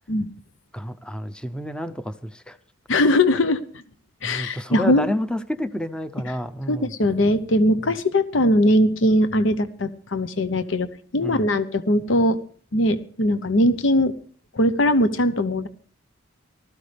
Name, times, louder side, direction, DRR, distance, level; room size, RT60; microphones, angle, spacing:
voice 1, 0.7-2.6 4.2-6.9 7.8-7.9 11.2-11.5, left 1 dB, 5° left, 11 dB, 0.6 m, -30 dB
voice 2, 2.9-3.8 4.2-5.1 6.7-12.4 12.7-14.1 14.5-15.7, left 1 dB, 75° left, 12 dB, 0.8 m, -20 dB
19.0 x 13.5 x 3.4 m, 0.43 s
head